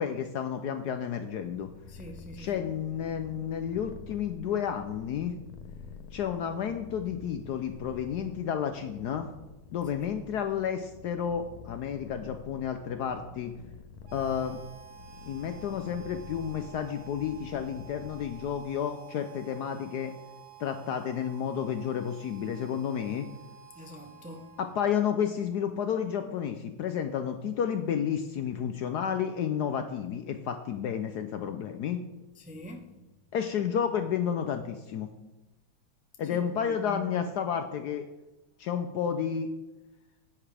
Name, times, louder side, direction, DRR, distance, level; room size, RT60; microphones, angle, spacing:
voice 1, 0.0-1.7 2.4-5.3 6.1-9.3 9.7-13.5 14.1-14.6 15.2-20.1 20.6-23.3 24.6-32.0 33.3-35.1 36.2-38.1 38.6-39.5, left 8 dB, 70° left, 7 dB, 0.9 m, -31 dB
Purr, 1.2-18.9, left 6 dB, 90° left, 1.6 m, -48 dB
voice 2, 1.9-2.6 10.0-10.2 23.7-24.5 32.3-32.9 36.2-37.1, right 1 dB, 10° right, 2 dB, 0.3 m, -44 dB
Harmonica, 14.0-25.1, right 10 dB, 35° right, 1.2 m, -51 dB
10.5 x 8.6 x 3.3 m, 1.0 s
omnidirectional pair, 2.2 m